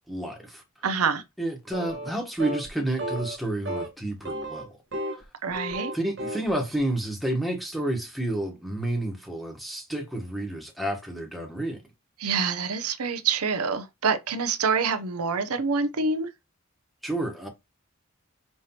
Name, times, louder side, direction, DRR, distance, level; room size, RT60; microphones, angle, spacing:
voice 1, 0.1-0.6 1.4-4.7 5.9-11.8 17.0-17.5, right 1 dB, ahead, 1.0 m, -30 dB
voice 2, 0.8-1.2 5.4-5.9 12.2-16.3, right 5 dB, 85° right, 0.6 m, -26 dB
sound 1, 1.7-2.1 2.4-2.7 3.0-3.4 3.6-3.9 4.2-5.2 5.5-6.5, right 1 dB, 55° right, 1.0 m, -33 dB
5.4 x 3.2 x 2.8 m
head